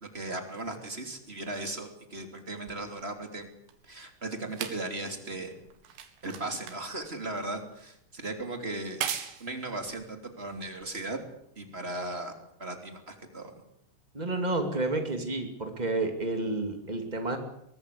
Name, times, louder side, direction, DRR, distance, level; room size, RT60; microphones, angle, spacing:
voice 1, 0.0-3.5 3.8-5.6 6.2-9.0 9.4-11.2 11.6-12.3 12.6-13.6, right 2 dB, 20° right, 5 dB, 2.1 m, -37 dB
sound 1, 2.7-11.3 12.1-12.2, right 9 dB, 70° right, 4.1 m, -41 dB
voice 2, 14.1-17.4, right 2 dB, 85° right, 4 dB, 0.4 m, -30 dB
23.5 x 20.5 x 8.5 m, 0.76 s
omnidirectional pair, 5.7 m